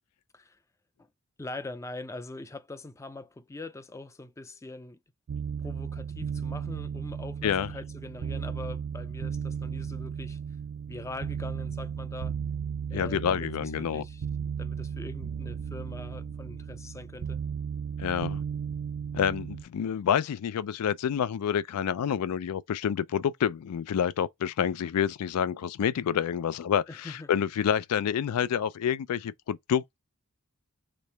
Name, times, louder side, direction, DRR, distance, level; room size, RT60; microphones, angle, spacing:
voice 1, 1.4-5.0 5.6-10.4 10.9-12.3 12.9-14.3 14.6-17.4 26.9-27.3, left 2 dB, 15° left, 0.3 m, -42 dB
sound 1, 5.3-19.6, right 7 dB, 60° right, 0.4 m, -35 dB
voice 2, 12.9-14.0 18.0-18.4 19.1-30.0, left 8 dB, 90° left, 0.4 m, -28 dB
3.1 x 3.0 x 3.3 m
head